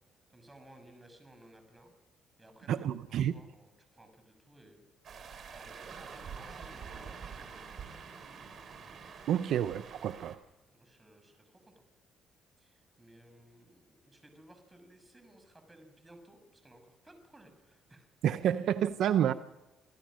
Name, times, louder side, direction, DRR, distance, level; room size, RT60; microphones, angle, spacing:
voice 1, 0.3-1.9 2.4-2.8 3.1-4.8 5.5-8.0 10.7-11.7 12.6-18.1 18.4-18.5, right 1 dB, 15° right, 6 dB, 6.4 m, -58 dB
voice 2, 2.7-3.4 9.3-10.4 18.2-19.3, right 10 dB, 70° right, 12 dB, 0.7 m, -29 dB
sound 1, 5.0-10.4, right 6 dB, 50° right, 3.5 m, -46 dB
27.5 x 16.0 x 6.4 m, 1.1 s
cardioid pair, 85°, 0 cm